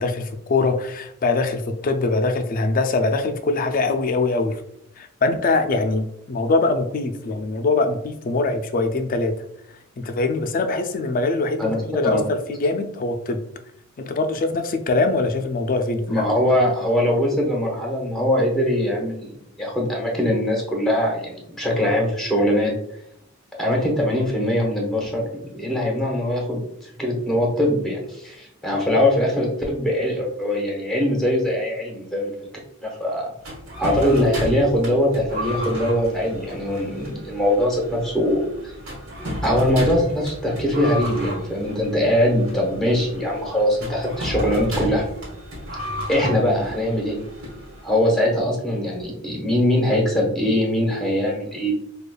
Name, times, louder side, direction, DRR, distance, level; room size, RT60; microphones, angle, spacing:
voice 1, 0.0-4.6 5.0-9.3 10.0-13.4 14.0-16.2, left 3 dB, 40° left, 7 dB, 0.3 m, -23 dB
voice 2, 16.1-22.7 23.5-26.6 27.0-32.3 32.8-33.3 33.8-38.7 39.4-45.0 46.1-47.2 47.8-51.7, left 1 dB, ahead, -2 dB, 0.8 m, -22 dB
sound 1, 33.4-48.1, equal, 80° right, 1.2 m, -33 dB
4.9 x 2.3 x 2.2 m, 0.76 s
head